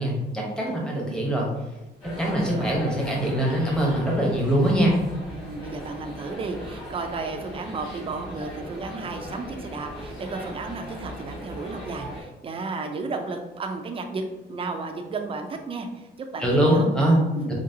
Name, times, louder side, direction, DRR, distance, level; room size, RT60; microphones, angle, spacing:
voice 1, 0.0-1.5 2.2-5.0 16.4-17.2 17.5-17.6, right 1 dB, 5° left, -3 dB, 0.9 m, -22 dB
voice 2, 0.7-1.3 2.5-2.7 5.3-14.2 14.5-17.0 17.4-17.5, right 3 dB, 30° right, 5 dB, 0.4 m, -33 dB
sound 1, 2.0-12.2, equal, 25° left, 1.5 m, -39 dB
3.9 x 3.4 x 2.7 m, 1.1 s
cardioid pair, 165°, 18 cm